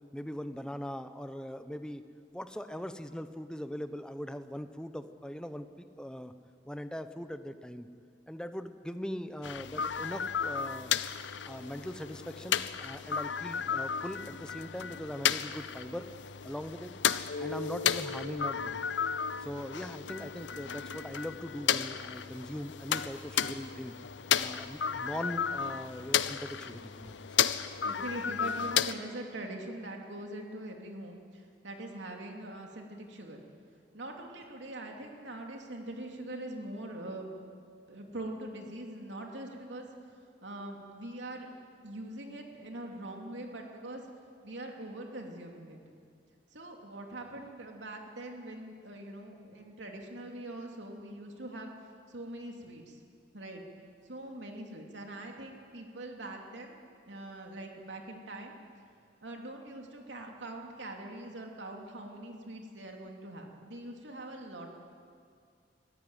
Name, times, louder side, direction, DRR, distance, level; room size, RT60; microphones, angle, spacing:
voice 1, 0.1-2.0 2.3-6.3 6.6-7.9 8.3-10.9 11.4-16.1 16.4-16.9 17.4-18.8 19.4-24.0 24.4-27.2, equal, 5° left, 10 dB, 0.9 m, -40 dB
sound 1, 9.4-28.9, left 8 dB, 85° left, 0.7 m, -33 dB
Mallet percussion, 17.3-21.7, left 4 dB, 70° left, 1.7 m, -43 dB
voice 2, 27.8-33.4 33.9-37.4 37.9-40.1 40.4-41.5 41.8-44.0 44.4-45.8 46.5-51.7 52.1-53.0 53.3-53.6 54.0-56.8 57.1-58.5 59.2-64.7, right 1 dB, 90° right, 2 dB, 2.8 m, -43 dB
23.5 x 14.5 x 9.1 m, 2.3 s
head